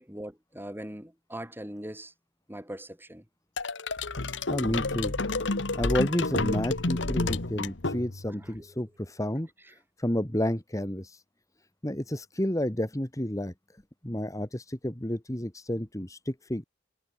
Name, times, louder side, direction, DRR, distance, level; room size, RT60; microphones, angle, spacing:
voice 1, 0.0-2.1 2.5-3.2 8.4-8.7, right 1 dB, 10° right, 7.2 m, -41 dB
sound 1, 3.6-8.4, left 3 dB, 70° left, 1.5 m, -30 dB
voice 2, 4.2-5.2 5.7-9.5 10.0-11.2 11.8-13.5 14.0-16.6, left 1 dB, 15° left, 2.0 m, -30 dB
head